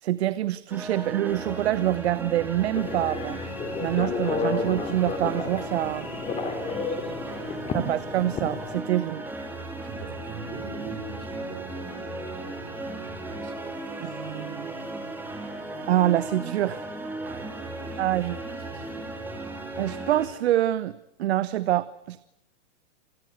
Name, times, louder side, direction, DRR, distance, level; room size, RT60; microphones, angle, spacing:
voice 1, 0.0-3.4 3.8-6.1 7.7-9.2 14.0-14.7 15.9-16.8 18.0-18.4 19.8-22.2, right 13 dB, 60° right, 17 dB, 1.0 m, -26 dB
sound 1, 0.7-20.3, right 2 dB, 5° right, 3.3 m, -36 dB
Telephone, 2.7-8.8, left 5 dB, 15° left, 3.3 m, -32 dB
voice 2, 6.7-7.9 9.8-13.7 17.2-19.1, right 5 dB, 30° right, 9 dB, 4.8 m, -43 dB
28.0 x 20.0 x 8.0 m, 0.85 s
hypercardioid pair, 155°, 35 cm